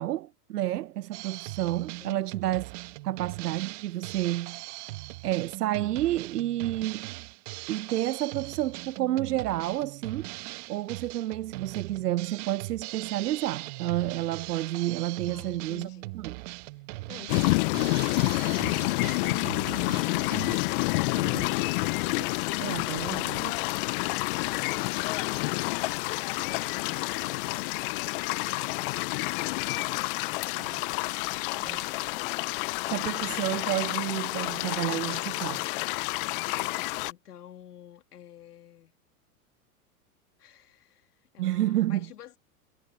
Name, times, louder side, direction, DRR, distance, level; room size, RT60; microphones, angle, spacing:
voice 1, 0.0-2.7 3.0-4.6 5.2-7.1 7.7-15.9 16.1-16.3 21.2-21.5 22.2-22.3 22.6-23.5 30.6-30.8 31.6-31.8 32.9-35.7 41.4-42.1, right 14 dB, 85° right, 0.6 m, -30 dB
Drum kit, 1.1-20.6, right 23 dB, 50° right, 1.1 m, -40 dB
voice 2, 15.3-16.1 22.8-23.7 24.6-25.9 26.4-29.3 31.8-32.4 36.7-38.9 40.4-42.4, left 10 dB, 85° left, 2.7 m, -50 dB
sound 1, 17.3-37.1, left 24 dB, 40° left, 0.4 m, -29 dB
hypercardioid pair, 115°, 46 cm